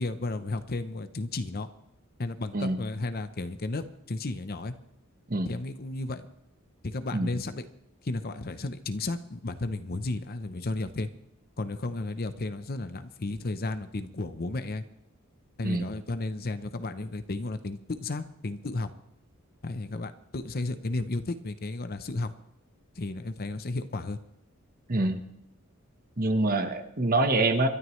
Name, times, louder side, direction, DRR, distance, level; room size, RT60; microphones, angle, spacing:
voice 1, 0.0-1.7 2.2-4.7 5.4-6.3 6.8-7.7 8.0-11.1 11.6-14.8 15.6-18.9 19.6-22.3 22.9-24.2, left 2 dB, 45° left, 10 dB, 0.7 m, -33 dB
voice 2, 2.5-2.8 5.3-5.5 7.1-7.3 15.6-15.8 24.9-25.2 26.2-27.7, right 2 dB, 40° right, 7 dB, 1.2 m, -25 dB
26.0 x 12.5 x 3.2 m, 0.83 s
head